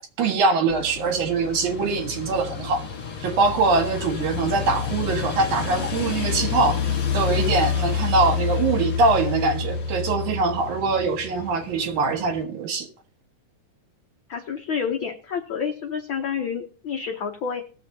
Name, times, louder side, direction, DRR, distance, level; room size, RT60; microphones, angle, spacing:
voice 1, 0.2-2.8 3.2-6.8 7.1-12.9, right 4 dB, 80° right, 3.1 m, -23 dB
sound 1, 0.7-12.4, left 6 dB, 60° left, 3.7 m, -29 dB
voice 2, 14.3-17.6, left 6 dB, 85° left, 1.0 m, -29 dB
20.0 x 7.2 x 2.7 m
omnidirectional pair, 3.4 m